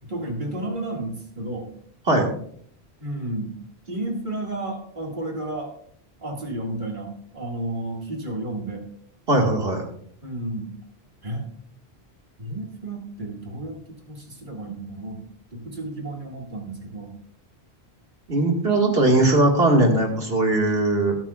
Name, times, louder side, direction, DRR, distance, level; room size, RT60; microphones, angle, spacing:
voice 1, 0.0-1.7 3.0-3.6 3.9-5.7 6.2-8.9 10.2-10.8 11.2-11.5 12.4-15.2 15.5-17.2 19.9-20.1, right 1 dB, 50° right, 1 dB, 2.3 m, -32 dB
voice 2, 9.3-9.8 18.3-21.2, right 2 dB, 70° right, 1 dB, 2.1 m, -19 dB
19.0 x 8.8 x 2.4 m, 0.63 s
omnidirectional pair, 1.1 m